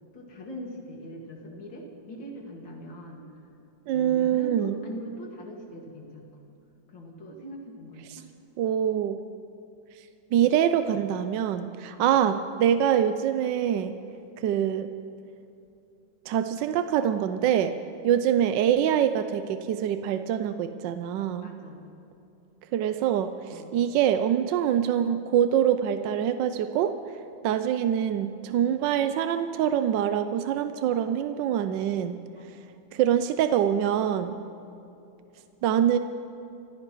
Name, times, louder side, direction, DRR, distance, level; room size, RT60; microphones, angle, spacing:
voice 1, 0.1-3.2 3.9-6.2 6.9-8.3 11.9-12.1 21.3-21.8 23.5-23.7 32.4-32.7 34.6-34.8, equal, 85° left, 0 dB, 2.8 m, -42 dB
voice 2, 3.9-4.8 8.1-8.2 8.6-9.2 10.3-13.9 14.4-14.9 16.3-17.7 18.0-21.5 22.7-26.9 27.4-32.2 32.9-34.3 35.6-36.0, right 9 dB, 75° right, 9 dB, 1.2 m, -24 dB
26.5 x 15.0 x 3.1 m, 2.8 s
omnidirectional pair, 2.1 m